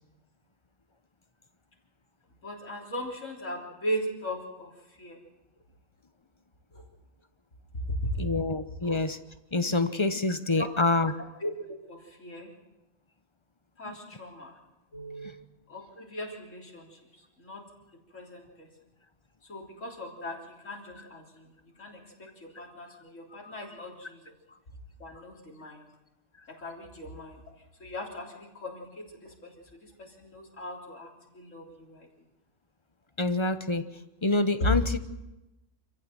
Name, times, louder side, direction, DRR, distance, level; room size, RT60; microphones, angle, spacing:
voice 1, 2.4-5.2 6.7-6.9 8.0-8.1 8.8-8.9 10.6-11.1 11.4-12.5 13.8-14.5 14.9-15.3 15.7-17.6 17.9-18.7 19.5-24.3 25.0-25.9 26.5-27.4 27.8-32.1 34.6-34.7, equal, 85° left, -1 dB, 3.9 m, -38 dB
voice 2, 8.2-9.2 9.5-11.1 13.9-14.0 33.2-33.8 34.2-35.0, left 2 dB, 25° left, 11 dB, 0.9 m, -26 dB
26.5 x 15.0 x 7.6 m, 1.0 s
omnidirectional pair, 1.3 m